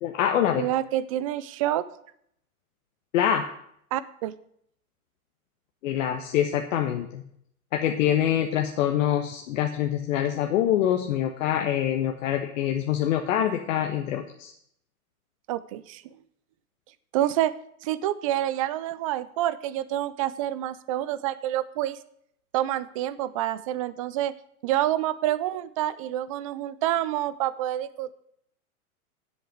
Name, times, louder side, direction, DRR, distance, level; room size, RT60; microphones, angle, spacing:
voice 1, 0.0-0.6 3.1-3.4 5.8-7.2 7.7-14.5, left 10 dB, 60° left, 4 dB, 1.3 m, -25 dB
voice 2, 0.5-1.9 3.9-4.3 15.5-16.0 17.1-17.5 17.8-22.0 22.5-24.3 24.6-28.1, right 13 dB, 25° right, 17 dB, 0.3 m, -27 dB
8.9 x 8.0 x 7.8 m, 0.70 s
hypercardioid pair, 125°, 45 cm